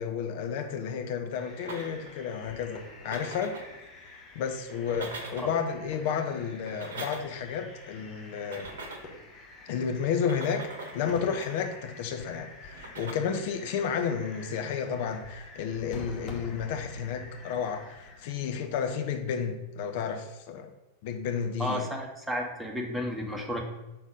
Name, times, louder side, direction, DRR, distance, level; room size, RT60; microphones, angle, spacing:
voice 1, 0.0-3.6 4.1-8.7 9.7-10.7 10.9-20.7 21.0-21.8, left 7 dB, 50° left, 6 dB, 0.8 m, -32 dB
sound 1, 1.3-19.0, left 2 dB, 30° left, 1.5 m, -48 dB
sound 2, 1.6-2.2 2.9-3.8 4.7-5.6 6.5-7.5 8.4-9.2 10.1-11.8 12.7-13.1, right 3 dB, 60° right, 1.0 m, -43 dB
voice 2, 21.6-23.6, equal, 5° right, 0 dB, 1.1 m, -32 dB
5.9 x 4.1 x 5.1 m, 0.98 s
figure-of-eight pair, 90°, 0 cm